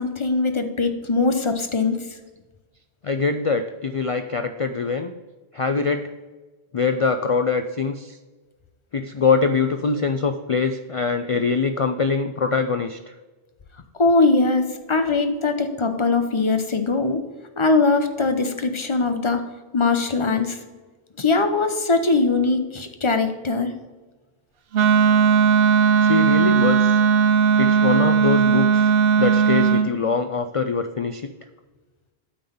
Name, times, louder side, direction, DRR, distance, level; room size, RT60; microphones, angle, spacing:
voice 1, 0.0-2.0 14.0-17.2 17.6-19.4 19.7-20.6 21.2-23.7, left 3 dB, 30° left, 7 dB, 0.7 m, -21 dB
voice 2, 3.0-5.1 5.5-6.1 6.7-8.2 8.9-13.1 26.0-27.0 27.6-28.9 29.2-31.3, left 5 dB, 65° left, 8 dB, 0.3 m, -23 dB
Wind instrument woodwind instrument, 24.7-29.9, right 6 dB, 65° right, 0.8 m, -17 dB
8.7 x 3.9 x 6.9 m, 1.3 s
omnidirectional pair, 1.1 m